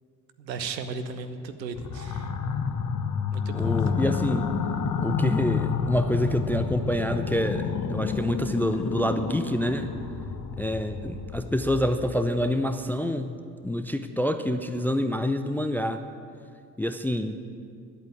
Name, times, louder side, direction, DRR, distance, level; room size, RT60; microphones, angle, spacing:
voice 1, 0.4-2.3 3.3-4.1, right 4 dB, 80° right, 9 dB, 0.8 m, -36 dB
sound 1, 1.8-12.3, left 5 dB, 35° left, 1.1 m, -29 dB
voice 2, 3.5-4.5 5.0-9.9 10.6-13.4 13.6-16.0 16.8-17.4, left 1 dB, 5° left, 9 dB, 0.3 m, -27 dB
11.0 x 8.2 x 8.7 m, 2.4 s
figure-of-eight pair, 50°, 49 cm